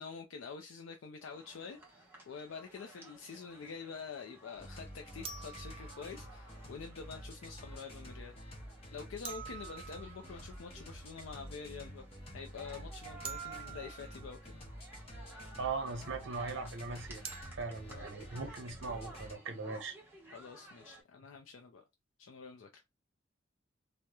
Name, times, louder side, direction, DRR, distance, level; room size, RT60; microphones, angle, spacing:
voice 1, 0.0-8.3 8.9-12.1 12.3-14.6 17.9-18.1 20.3-21.8 22.2-22.9, left 5 dB, 85° left, 0.4 m, -47 dB
sound 1, 1.2-21.0, right 2 dB, 10° right, 0.9 m, -56 dB
sound 2, 1.8-1.9 5.2-6.5 9.2-10.6 13.2-14.5 17.2-17.4, right 7 dB, 30° right, 0.3 m, -47 dB
sound 3, 4.6-19.3, equal, 30° left, 0.7 m, -49 dB
voice 2, 15.6-17.2 17.5-20.0, right 4 dB, 70° right, 0.6 m, -39 dB
2.9 x 2.1 x 2.3 m
head